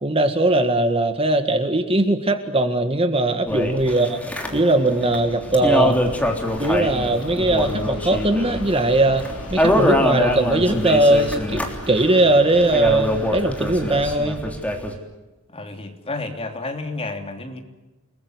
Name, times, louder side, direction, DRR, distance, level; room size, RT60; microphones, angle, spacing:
voice 1, 0.0-4.2 4.5-6.0 6.6-11.6 11.9-14.4, right 2 dB, 25° right, 7 dB, 1.8 m, -19 dB
sound 1, 3.5-15.0, left 1 dB, 5° left, 3.4 m, -24 dB
voice 2, 3.7-4.2 15.5-17.6, left 2 dB, 25° left, 4 dB, 3.1 m, -31 dB
Fixed-wing aircraft airplane, 4.2-13.3, left 2 dB, 75° left, 5.9 m, -39 dB
29.5 x 20.5 x 8.1 m, 1.1 s
head